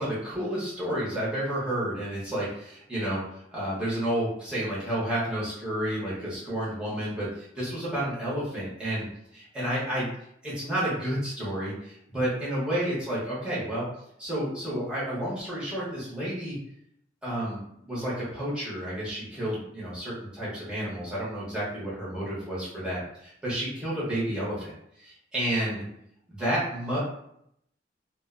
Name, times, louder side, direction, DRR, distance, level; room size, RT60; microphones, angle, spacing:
voice 1, 0.0-3.2 3.5-9.0 9.3-10.1 10.4-13.9 14.2-16.6 17.2-24.7 25.0-25.8 26.3-27.0, right 1 dB, 5° right, -9 dB, 0.8 m, -30 dB
2.3 x 2.1 x 2.4 m, 0.74 s
head